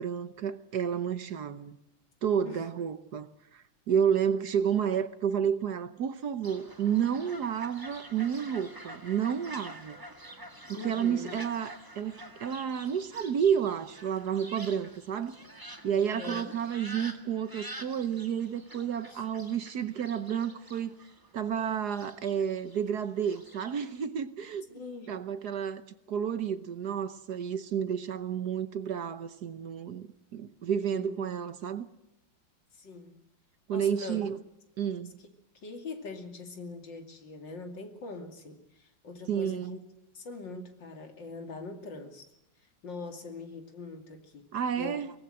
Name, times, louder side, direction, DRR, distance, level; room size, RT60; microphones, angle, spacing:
voice 1, 0.0-1.8 2.2-10.0 10.7-15.3 15.8-21.0 21.3-24.8 25.1-25.8 26.1-30.1 30.3-31.9 33.7-34.4 34.8-35.1 39.3-39.8 44.5-45.1, right 8 dB, 60° right, 1.4 m, -31 dB
Fowl, 6.4-24.1, right 1 dB, 10° right, 1.7 m, -47 dB
voice 2, 10.7-11.4 15.9-16.5 19.1-19.2 24.7-25.1 30.9-31.3 32.7-33.2 33.7-34.2 35.6-39.8 40.1-42.3 42.8-44.4 44.7-45.0, left 3 dB, 70° left, 3.3 m, -42 dB
23.5 x 19.0 x 7.8 m
omnidirectional pair, 2.1 m